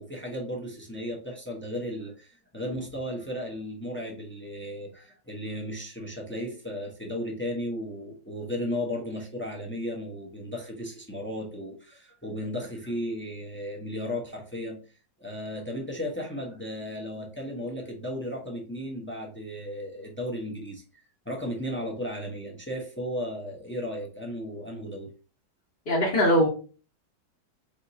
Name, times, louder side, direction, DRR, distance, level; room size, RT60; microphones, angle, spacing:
voice 1, 0.0-14.8 15.2-25.1, equal, 10° left, 0 dB, 0.5 m, -35 dB
voice 2, 25.9-26.5, equal, 40° left, -5 dB, 1.0 m, -21 dB
4.4 x 3.6 x 2.7 m, 0.36 s
omnidirectional pair, 1.9 m